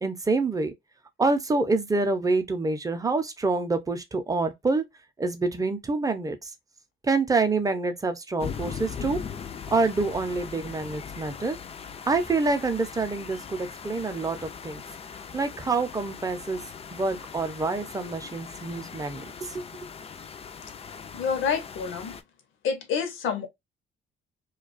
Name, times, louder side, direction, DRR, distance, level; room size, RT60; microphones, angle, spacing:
voice 1, 0.0-0.7 1.2-4.8 5.2-6.5 7.0-9.2 9.7-11.6 12.1-14.8 15.3-16.6 16.9-19.6, right 3 dB, 15° right, 0.5 m, -27 dB
sound 1, 8.4-22.2, left 7 dB, 30° left, 0.3 m, -40 dB
voice 2, 21.1-22.2 22.6-23.5, left 6 dB, 80° left, 0.7 m, -28 dB
2.3 x 2.3 x 2.4 m
cardioid pair, 90°, 20 cm